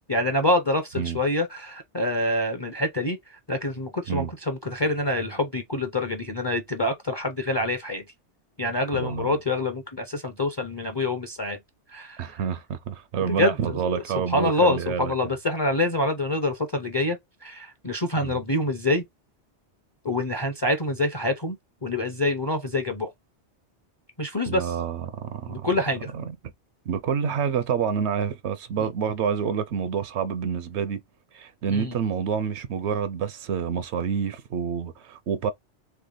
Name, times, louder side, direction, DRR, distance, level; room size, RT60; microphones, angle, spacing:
voice 1, 0.1-8.0 8.6-11.6 11.9-12.4 13.2-13.8 14.1-19.1 20.0-21.6 21.8-23.1 24.2-24.8 25.5-26.1 28.8-28.9 31.7-31.9, left 1 dB, 30° left, 0.6 m, -26 dB
voice 2, 8.9-9.4 12.2-15.1 18.2-18.4 24.5-25.7 26.1-26.2 26.9-31.0 31.3-35.5, right 7 dB, 75° right, 0.8 m, -28 dB
3.3 x 3.3 x 3.9 m
omnidirectional pair, 1.2 m